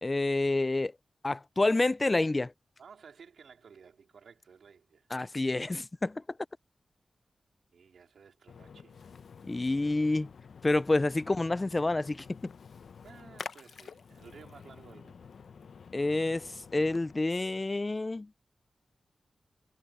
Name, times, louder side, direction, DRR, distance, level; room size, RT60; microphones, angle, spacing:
voice 1, 0.0-0.9 1.2-2.5 5.1-6.2 9.5-10.3 10.6-12.4 15.9-18.3, left 2 dB, 20° left, 0.4 m, -28 dB
voice 2, 2.8-5.1 7.7-9.1 13.0-15.3, right 6 dB, 80° right, 4.1 m, -55 dB
Splash splatter, 8.5-17.1, left 6 dB, 65° left, 0.7 m, -49 dB
wide cardioid pair, 175°, 0 cm